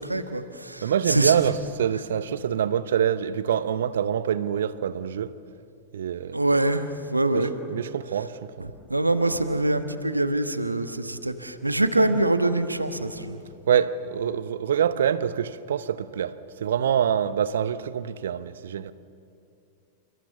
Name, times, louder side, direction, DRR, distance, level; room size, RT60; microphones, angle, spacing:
voice 1, 0.0-1.4 6.3-7.5 8.6-13.4, right 2 dB, 85° right, 1.3 m, -24 dB
voice 2, 0.8-5.3 5.9-6.4 7.3-7.5 7.7-8.7 13.7-18.9, right 9 dB, 65° right, 1.0 m, -25 dB
29.5 x 28.0 x 7.0 m
figure-of-eight pair, 90°, 0 cm